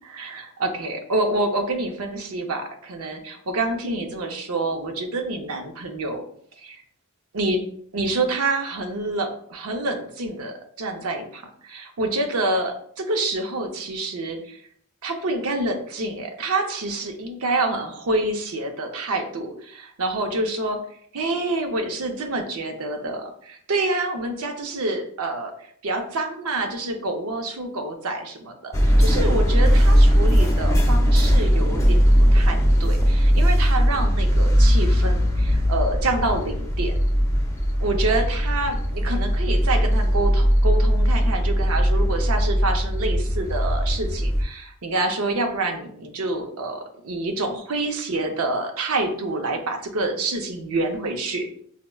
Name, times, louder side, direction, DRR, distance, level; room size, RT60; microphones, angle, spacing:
voice 1, 0.1-6.2 6.6-6.8 7.3-7.6 7.9-14.6 15.0-20.8 21.1-36.9 37.8-51.5, right 2 dB, 80° right, 4 dB, 0.6 m, -27 dB
sound 1, 28.7-44.4, equal, 15° left, 0.4 m, -19 dB
5.6 x 2.0 x 2.3 m, 0.63 s
head